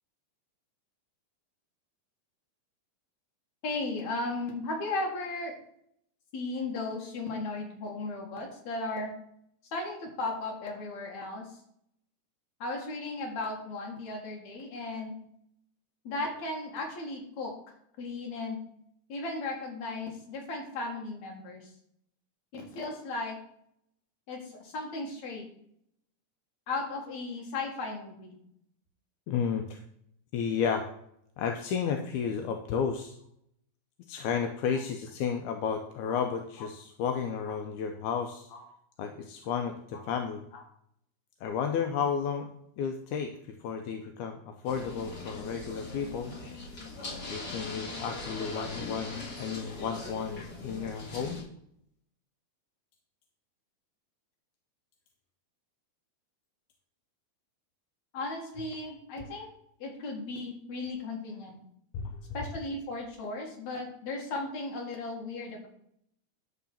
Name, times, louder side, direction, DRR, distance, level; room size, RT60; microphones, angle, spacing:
voice 1, 3.6-5.5 6.3-9.1 9.7-11.5 12.6-15.2 16.0-17.5 18.0-18.6 19.1-21.7 22.5-23.4 24.3-25.5 26.7-28.4 36.1-36.2 38.5-38.6 40.5-40.6 58.1-59.5 59.8-61.6 62.3-65.7, left 2 dB, 65° left, 1 dB, 3.0 m, -36 dB
voice 2, 29.3-29.8 30.3-30.9 31.4-33.2 34.1-38.5 39.0-40.5 41.4-42.5 42.8-46.3 47.3-51.4 61.9-62.4, left 7 dB, 80° left, 4 dB, 2.1 m, -32 dB
sound 1, 44.6-51.4, left 3 dB, 50° left, 3.4 m, -40 dB
11.0 x 3.7 x 7.2 m, 0.71 s
omnidirectional pair, 3.5 m